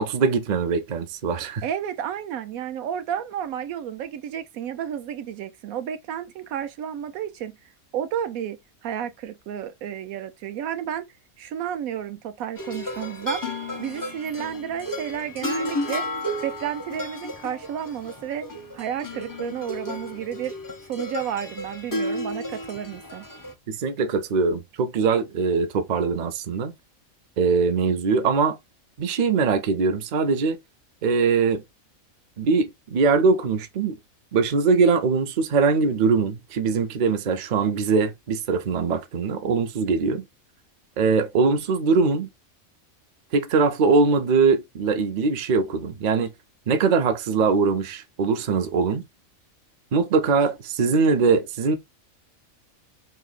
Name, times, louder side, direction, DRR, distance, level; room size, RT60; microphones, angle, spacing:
voice 1, 0.0-1.6 23.7-26.7 27.4-28.6 29.0-30.6 31.0-31.6 32.4-33.9 34.3-40.2 41.0-42.3 43.3-46.3 46.7-49.0 49.9-51.8, right 4 dB, 55° right, 0.5 m, -22 dB
voice 2, 1.6-7.6 7.9-11.1 11.4-13.5 13.8-16.1 16.4-18.5 18.7-20.5 20.9-23.3, right 9 dB, 85° right, 1.1 m, -31 dB
sound 1, 12.6-23.5, left 1 dB, 25° left, 0.4 m, -33 dB
3.0 x 2.8 x 3.9 m
omnidirectional pair, 1.4 m